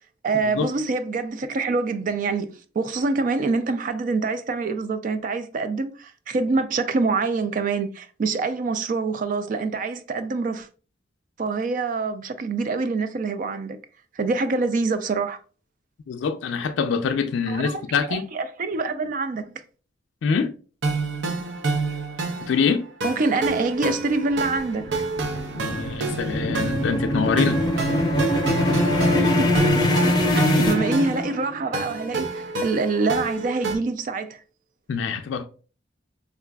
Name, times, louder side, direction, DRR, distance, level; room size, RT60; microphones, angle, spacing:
voice 1, 0.2-10.7 11.4-13.8 14.2-15.4 17.5-17.8 18.1-19.5 23.0-25.0 29.1-29.6 30.0-34.4, right 3 dB, 45° right, 0.3 m, -25 dB
voice 2, 16.1-18.3 20.2-20.5 22.4-22.9 25.5-27.9 29.2-29.3 34.9-35.4, left 6 dB, 80° left, 0.3 m, -25 dB
sound 1, 20.8-33.8, right 3 dB, 80° right, 0.6 m, -29 dB
sound 2, 24.3-31.6, left 1 dB, 20° left, 0.5 m, -22 dB
4.6 x 2.4 x 2.2 m
head